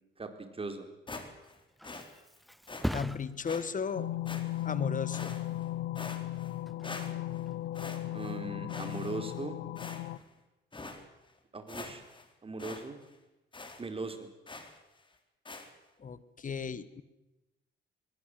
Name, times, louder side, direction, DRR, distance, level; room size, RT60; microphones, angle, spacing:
voice 1, 0.2-0.9 8.1-9.6 11.5-12.0 12.4-13.0 13.8-14.3, right 3 dB, 30° right, 7 dB, 3.9 m, -39 dB
sound 1, 1.1-1.6 1.8-2.1 2.7-2.9 3.5-3.6 4.3-4.7 5.1-5.6 6.0-6.6 6.8-7.4 7.7-8.4 8.7-9.4 9.8-10.3 10.7-11.0 11.4-11.5 11.7-12.3 12.6-12.8 13.1-13.2 13.5-13.8 14.5-14.8 15.5-15.7, left 3 dB, 25° left, 4.1 m, -44 dB
Thump thud, 1.4-8.7 9.1-9.5, equal, ahead, 0.9 m, -43 dB
voice 2, 2.9-4.1 4.6-5.4 16.0-17.0, left 6 dB, 40° left, 16 dB, 1.6 m, -35 dB
sound 2, 3.9-10.2, left 14 dB, 80° left, 1.0 m, -36 dB
22.5 x 21.0 x 7.8 m, 1.0 s
cardioid pair, 90°, 20 cm